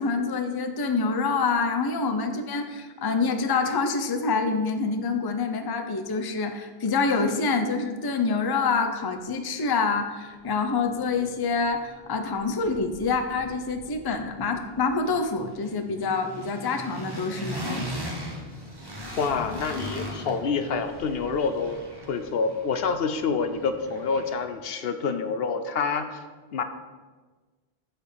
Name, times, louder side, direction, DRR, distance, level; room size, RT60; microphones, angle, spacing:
voice 1, 0.0-18.2, left 4 dB, 30° left, 6 dB, 0.5 m, -26 dB
sound 1, 10.6-10.7 10.9-12.1 12.3-24.5, right 1 dB, 20° right, 1.3 m, -40 dB
voice 2, 19.2-21.8 22.1-26.2 26.5-26.6, left 5 dB, 70° left, 8 dB, 0.9 m, -27 dB
7.9 x 4.4 x 6.8 m, 1.3 s
omnidirectional pair, 1.1 m